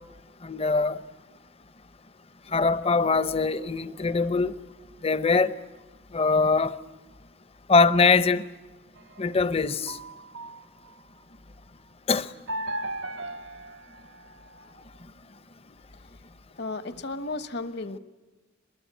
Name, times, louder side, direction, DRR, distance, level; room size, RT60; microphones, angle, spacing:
voice 1, 0.4-1.0 2.5-4.6 5.0-5.5 6.1-6.8 7.7-8.4 9.2-10.0 12.1-12.3, left 4 dB, 30° left, 0.7 m, -22 dB
sound 1, 9.0-11.2 12.5-14.7, right 1 dB, 60° right, 0.7 m, -37 dB
voice 2, 16.6-18.0, left 2 dB, 55° left, 1.2 m, -34 dB
23.5 x 21.5 x 9.2 m
head